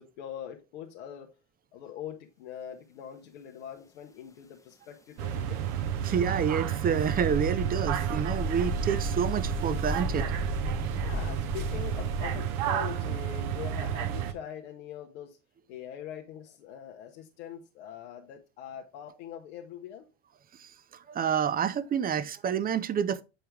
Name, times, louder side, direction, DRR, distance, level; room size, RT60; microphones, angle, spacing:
voice 1, 0.0-1.3 1.7-5.6 11.0-15.4 15.7-20.1, left 9 dB, 65° left, 1.1 m, -43 dB
sound 1, 5.2-14.3, right 9 dB, 55° right, 1.0 m, -31 dB
voice 2, 6.0-10.3 20.6-20.7 21.1-23.2, right 7 dB, 25° right, 0.6 m, -28 dB
sound 2, 6.9-12.4, left 3 dB, 10° left, 0.8 m, -36 dB
7.8 x 4.4 x 3.3 m
hypercardioid pair, 85°, 37 cm